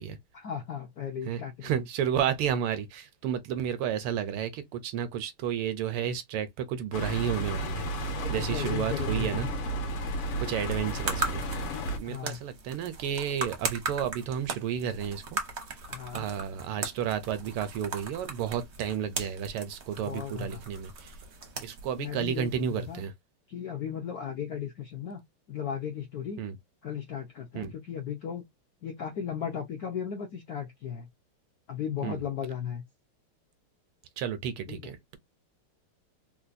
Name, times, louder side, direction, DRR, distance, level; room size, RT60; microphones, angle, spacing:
voice 1, 0.3-1.7 8.2-9.3 12.0-12.4 15.9-16.3 20.0-20.6 22.0-23.0 23.5-25.2 25.5-26.4 26.8-28.4 28.8-31.1 31.7-32.8 34.7-34.8, left 8 dB, 70° left, 0.9 m, -36 dB
voice 2, 1.2-9.5 10.4-11.4 12.0-15.4 16.1-21.1 21.6-23.1 26.4-26.6 27.5-27.7 32.0-32.2 34.2-35.2, right 8 dB, 85° right, 1.6 m, -32 dB
sound 1, 6.9-12.0, right 1 dB, 85° left, 1.9 m, -32 dB
sound 2, 10.6-23.0, right 3 dB, 60° right, 0.7 m, -39 dB
4.3 x 2.2 x 2.5 m
omnidirectional pair, 2.4 m